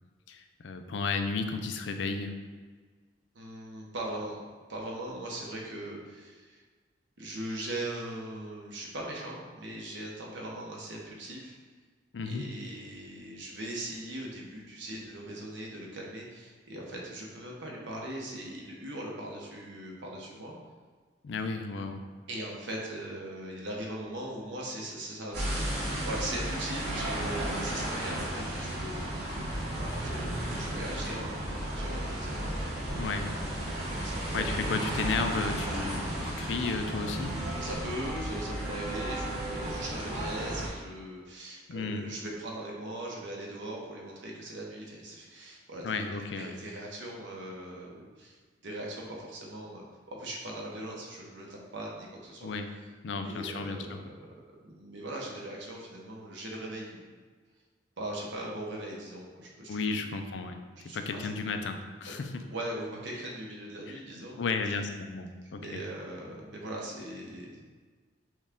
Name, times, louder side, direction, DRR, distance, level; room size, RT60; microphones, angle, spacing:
voice 1, 0.3-2.4 12.1-12.5 21.2-22.1 32.9-33.4 34.3-37.4 41.7-42.1 45.8-46.6 52.4-52.8 53.0-54.0 59.7-62.4 63.9-64.0 64.4-65.8, left 4 dB, 80° left, 7 dB, 0.4 m, -33 dB
voice 2, 3.3-4.4 4.7-6.6 7.2-11.5 12.2-20.6 22.3-33.3 33.9-34.7 37.6-48.4 48.6-52.5 53.1-54.1 54.6-57.0 58.0-59.8 60.8-61.2 62.1-62.2 62.5-64.4 65.6-67.7, right 1 dB, 85° right, -2 dB, 1.0 m, -40 dB
sound 1, 25.3-40.7, right 1 dB, 60° right, 1.4 m, -34 dB
6.2 x 2.4 x 3.6 m, 1.5 s
head